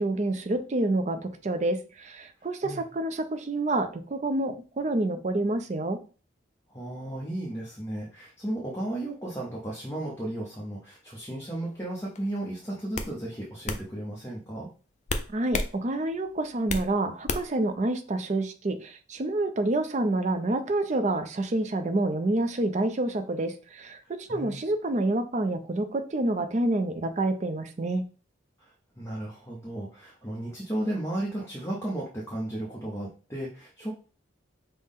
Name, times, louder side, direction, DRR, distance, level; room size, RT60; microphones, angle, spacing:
voice 1, 0.0-6.0 15.3-28.1, right 2 dB, 35° right, 8 dB, 0.4 m, -28 dB
voice 2, 6.7-14.7 24.0-24.6 28.6-33.9, right 1 dB, 15° left, -3 dB, 0.7 m, -34 dB
sound 1, 12.2-12.4 12.9-13.1 13.7-13.8 15.1-15.7 16.1-16.9 17.3-17.6, left 3 dB, 35° left, 0.3 m, -30 dB
5.5 x 2.1 x 3.5 m, 0.37 s
head